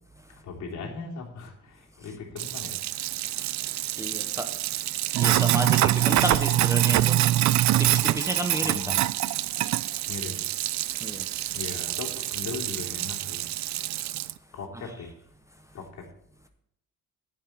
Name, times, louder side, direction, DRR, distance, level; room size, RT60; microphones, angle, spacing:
voice 1, 0.4-2.9 8.6-9.0 10.1-10.5 10.9-11.0 11.5-13.5 14.5-15.1 15.7-16.1, left 4 dB, 65° left, -1 dB, 3.2 m, -38 dB
Sink (filling or washing), 2.4-14.3, right 15 dB, 60° right, 0.4 m, -25 dB
voice 2, 3.3-4.5 5.2-7.2 7.8-9.0 11.0-11.3, right 1 dB, 10° right, 6 dB, 0.7 m, -32 dB
11.0 x 10.5 x 4.5 m, 0.76 s
cardioid pair, 175°, 32 cm